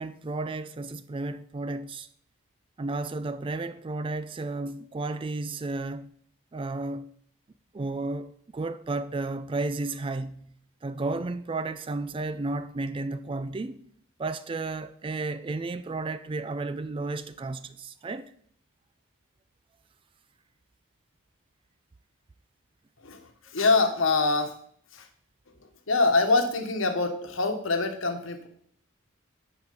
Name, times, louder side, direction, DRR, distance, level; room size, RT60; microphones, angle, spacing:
voice 1, 0.0-2.1 2.8-6.1 6.5-7.1 7.7-10.5 10.8-13.8 14.2-18.3, right 3 dB, 25° right, 0.3 m, -33 dB
voice 2, 23.0-24.5 24.9-25.1 25.9-28.5, left 3 dB, 70° left, 1.2 m, -25 dB
9.7 x 4.9 x 5.4 m
head